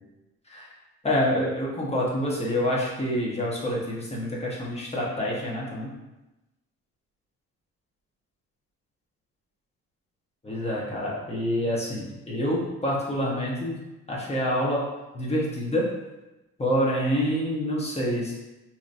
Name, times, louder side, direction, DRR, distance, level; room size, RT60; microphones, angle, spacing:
voice 1, 1.0-5.9 10.4-13.8 14.1-14.8 15.1-15.9 16.6-18.3, equal, 20° left, -4 dB, 1.1 m, -27 dB
3.9 x 2.9 x 2.6 m, 1.0 s
cardioid pair, 90°, 30 cm